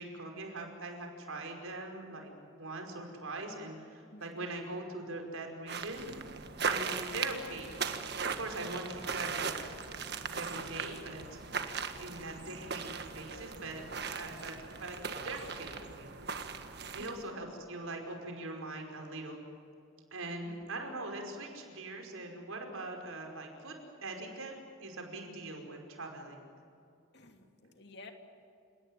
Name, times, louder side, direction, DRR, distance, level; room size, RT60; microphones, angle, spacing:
voice 1, 0.0-6.1 6.6-9.5 10.3-11.4 12.0-16.1 16.8-19.4 20.1-23.8 24.0-24.6 24.8-26.4, right 2 dB, 85° right, 3 dB, 5.2 m, -42 dB
voice 2, 4.1-4.5 13.0-13.8 17.0-17.4 20.4-20.7 27.1-28.1, left 2 dB, 50° left, 5 dB, 2.7 m, -53 dB
sound 1, 5.7-17.2, right 5 dB, 50° right, 1.6 m, -38 dB
29.5 x 18.0 x 9.4 m, 2.5 s
head